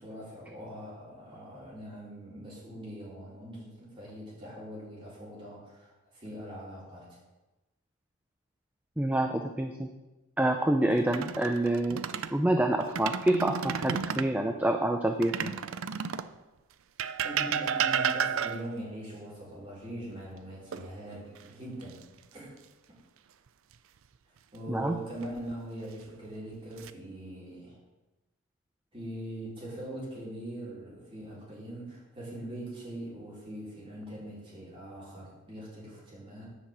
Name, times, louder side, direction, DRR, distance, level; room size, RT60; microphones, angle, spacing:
voice 1, 0.0-7.2 17.2-22.0 22.3-22.6 24.3-27.8 28.9-36.4, right 1 dB, 25° right, -7 dB, 4.4 m, -42 dB
voice 2, 9.0-9.9 10.4-12.0 12.3-15.5 24.7-25.0, right 1 dB, 5° right, 4 dB, 0.4 m, -27 dB
sound 1, 11.0-12.4 12.8-14.3 15.2-16.4 17.0-18.8 20.7-21.4 21.8-22.0 24.9-25.5 26.3-26.9, right 7 dB, 60° right, 0.4 m, -32 dB
10.0 x 5.8 x 7.3 m, 1.1 s
head